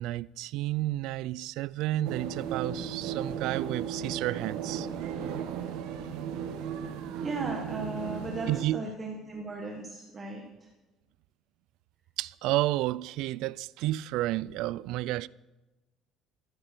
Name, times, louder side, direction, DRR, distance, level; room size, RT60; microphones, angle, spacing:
voice 1, 0.0-4.9 8.5-8.8 12.2-15.3, right 16 dB, 70° right, 0.3 m, -31 dB
sound 1, 2.0-8.6, right 8 dB, 90° right, 1.5 m, -36 dB
voice 2, 7.2-10.7, right 3 dB, 20° right, 1.4 m, -36 dB
13.5 x 10.5 x 6.7 m
cardioid pair, 175°, 0 cm